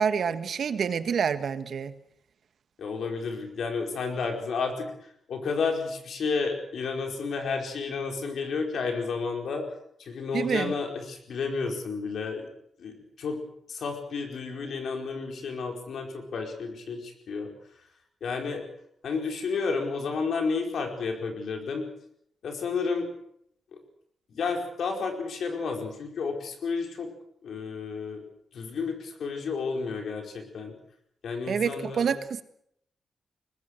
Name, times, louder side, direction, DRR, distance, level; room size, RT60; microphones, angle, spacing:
voice 1, 0.0-2.0 10.3-10.7 31.5-32.4, right 7 dB, 65° right, 11 dB, 1.5 m, -27 dB
voice 2, 2.8-5.0 5.3-9.7 10.0-12.5 12.8-13.4 13.7-17.5 18.2-18.6 19.0-21.9 22.4-23.1 24.3-27.1 27.4-28.2 28.5-30.7 31.2-32.1, left 4 dB, 75° left, 3 dB, 4.9 m, -31 dB
23.0 x 20.0 x 6.7 m, 0.72 s
cardioid pair, 90°, 0 cm